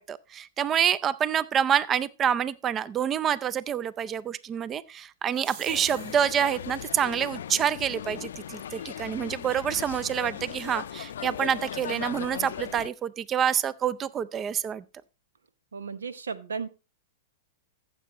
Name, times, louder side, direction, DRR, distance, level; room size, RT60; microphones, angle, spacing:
voice 1, 0.0-14.8, right 9 dB, 25° right, 0.4 m, -27 dB
sound 1, 5.3-6.6, right 8 dB, 50° right, 1.1 m, -46 dB
sound 2, 5.7-12.9, left 10 dB, 75° left, 0.4 m, -38 dB
voice 2, 15.7-16.7, right 5 dB, 90° right, 0.9 m, -34 dB
14.5 x 7.4 x 3.0 m
hypercardioid pair, 115°, 0 cm